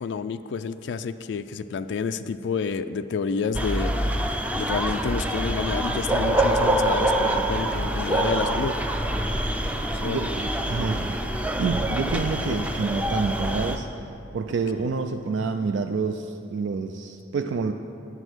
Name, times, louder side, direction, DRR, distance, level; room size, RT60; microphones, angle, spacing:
voice 1, 0.0-3.9 4.5-8.7 10.0-10.3 12.4-12.7 14.8-14.9, left 5 dB, 60° left, 11 dB, 0.3 m, -29 dB
sound 1, 3.5-13.8, right 1 dB, 5° right, 0.5 m, -25 dB
voice 2, 10.0-11.2 11.6-13.9 14.3-17.7, right 4 dB, 65° right, 6 dB, 0.4 m, -28 dB
9.8 x 8.0 x 6.1 m, 2.6 s
head